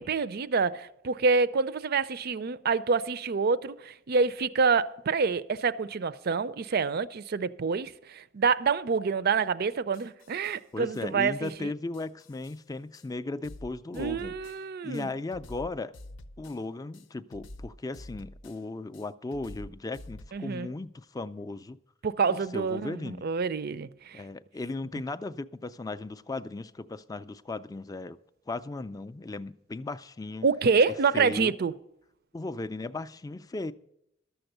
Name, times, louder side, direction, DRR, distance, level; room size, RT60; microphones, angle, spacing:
voice 1, 0.0-11.7 13.9-15.1 20.3-20.7 22.0-24.2 30.4-31.7, right 5 dB, 50° right, 0.5 m, -27 dB
sound 1, 9.9-10.6 10.9-11.1 11.4-11.6 11.9-12.6 12.9-13.1 13.4-14.6 14.9-16.6 16.9-18.6 18.9-20.3, left 1 dB, 75° left, 0.6 m, -47 dB
voice 2, 10.7-14.4 14.8-15.9 16.4-21.8 22.3-23.2 24.1-28.2 28.5-30.5 31.1-31.5 32.3-33.7, left 2 dB, 20° left, 0.4 m, -36 dB
12.5 x 7.0 x 6.6 m
head